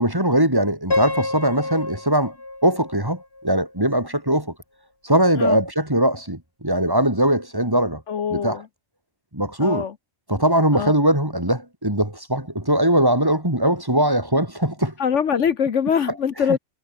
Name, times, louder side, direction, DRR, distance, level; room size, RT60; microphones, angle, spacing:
voice 1, 0.0-2.3 2.6-4.5 5.0-8.0 8.3-8.6 9.3-9.9 10.3-14.9, right 1 dB, 15° right, 3.5 m, -21 dB
Piano, 0.9-3.9, left 2 dB, 50° left, 4.3 m, -29 dB
voice 2, 8.1-8.6 9.6-9.9 10.7-10.9 15.0-16.6, left 7 dB, 65° left, 1.3 m, -23 dB
omnidirectional pair, 1.3 m